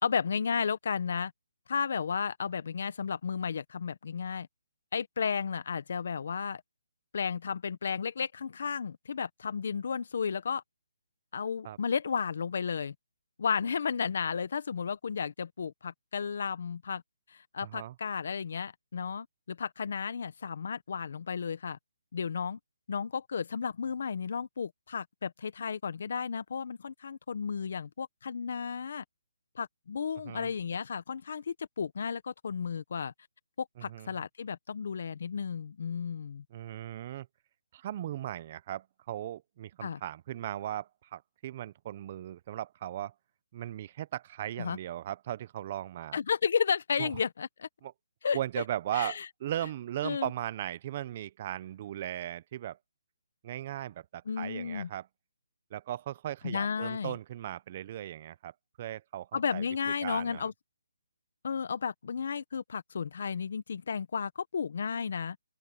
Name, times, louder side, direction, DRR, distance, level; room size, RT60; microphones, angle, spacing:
voice 1, 0.0-1.3 1.7-4.5 4.9-6.6 7.1-10.6 11.3-12.9 13.4-17.0 17.3-21.8 22.1-22.6 22.9-29.0 29.5-33.1 33.6-36.4 39.8-40.0 44.6-44.8 46.1-47.7 48.2-48.4 48.9-49.3 50.0-50.3 54.3-54.9 56.4-57.1 59.3-60.5 61.4-65.4, left 6 dB, 60° left, 1.0 m, -33 dB
voice 2, 17.6-17.9 30.2-30.5 33.8-34.1 36.5-37.3 37.7-43.1 43.5-46.2 47.0-47.1 47.8-47.9 48.3-52.8 53.4-55.1 55.7-58.5 58.8-60.4, right 12 dB, 35° right, 0.7 m, -37 dB
open air
hypercardioid pair, 160°, 0 cm